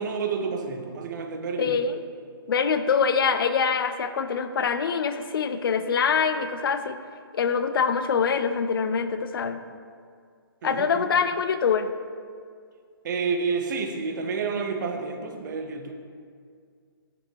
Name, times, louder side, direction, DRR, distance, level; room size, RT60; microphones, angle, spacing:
voice 1, 0.0-1.8 10.6-11.1 13.0-15.9, right 5 dB, 50° right, 5 dB, 0.8 m, -29 dB
voice 2, 1.6-2.0 2.5-7.0 7.3-9.6 10.6-11.9, left 6 dB, 65° left, 10 dB, 0.5 m, -24 dB
9.3 x 6.0 x 2.9 m, 2.1 s
hypercardioid pair, 145°, 13 cm